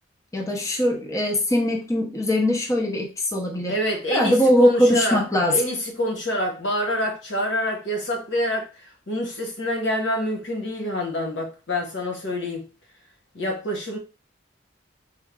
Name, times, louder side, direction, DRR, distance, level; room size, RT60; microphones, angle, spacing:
voice 1, 0.3-3.7 4.1-5.6, equal, 15° left, 0.6 m, -21 dB
voice 2, 3.7-5.2 5.5-12.7 13.3-14.0, equal, 85° left, 1.2 m, -26 dB
4.4 x 2.0 x 3.6 m
head